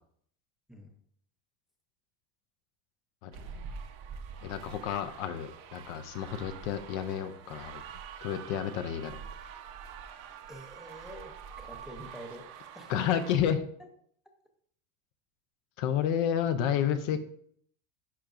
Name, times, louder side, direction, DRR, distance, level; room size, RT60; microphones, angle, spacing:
voice 1, 3.2-3.7 4.4-7.8 8.2-9.2 12.9-13.6 15.8-17.2, left 9 dB, 45° left, 9 dB, 0.6 m, -31 dB
sound 1, 3.3-13.4, right 7 dB, 45° right, 0.8 m, -46 dB
voice 2, 10.5-12.5 12.7-13.2 17.1-17.2, equal, ahead, 3 dB, 0.6 m, -47 dB
10.5 x 5.7 x 2.5 m, 0.63 s
supercardioid pair, 160°, 44 cm